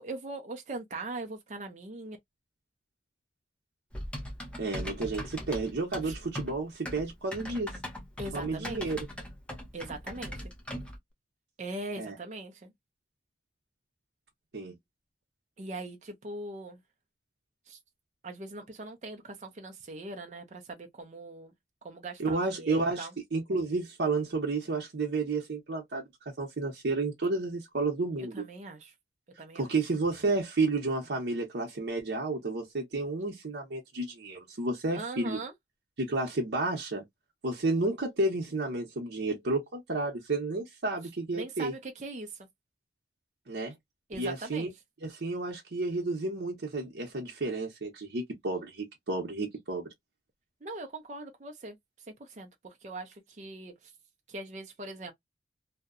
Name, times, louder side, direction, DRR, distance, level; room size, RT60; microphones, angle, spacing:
voice 1, 0.0-2.2 6.0-6.2 8.2-8.9 9.7-10.4 11.6-12.7 15.6-16.8 17.7-17.8 18.2-21.5 21.8-23.1 28.2-28.9 29.4-29.7 34.9-35.5 41.3-42.5 44.1-44.7 50.6-51.8 52.1-53.9 54.3-55.1, right 2 dB, 40° right, 0.4 m, -41 dB
Typing, 3.9-11.0, equal, 5° left, 0.6 m, -40 dB
voice 2, 4.6-7.7 8.3-9.0 12.0-12.1 14.5-14.7 22.2-26.1 26.4-28.3 29.5-35.4 36.0-37.0 37.4-41.7 43.5-43.7 44.1-44.7 45.0-49.8, right 3 dB, 75° right, 0.7 m, -31 dB
2.7 x 2.1 x 2.4 m
head